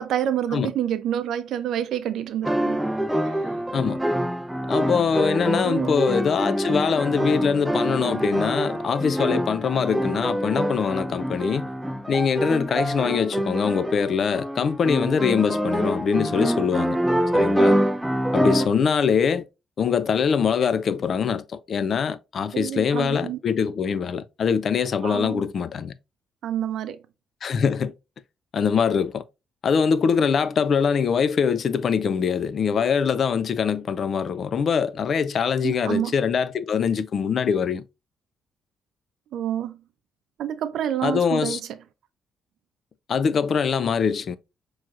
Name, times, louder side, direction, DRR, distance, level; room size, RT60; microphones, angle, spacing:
voice 1, 0.0-2.8 3.3-3.4 5.6-5.9 22.5-23.4 25.0-25.4 26.4-27.0 35.6-36.2 39.3-39.8 40.4-41.7, right 10 dB, 75° right, 0.5 m, -28 dB
sound 1, 2.4-18.7, equal, 5° right, 0.5 m, -25 dB
voice 2, 4.7-11.7 12.1-17.0 17.3-17.8 18.3-19.5 19.8-25.9 27.4-27.9 28.5-29.3 29.6-37.8 41.0-41.6 43.1-44.4, left 6 dB, 55° left, 0.4 m, -23 dB
6.1 x 3.1 x 2.4 m
cardioid pair, 90°, 0 cm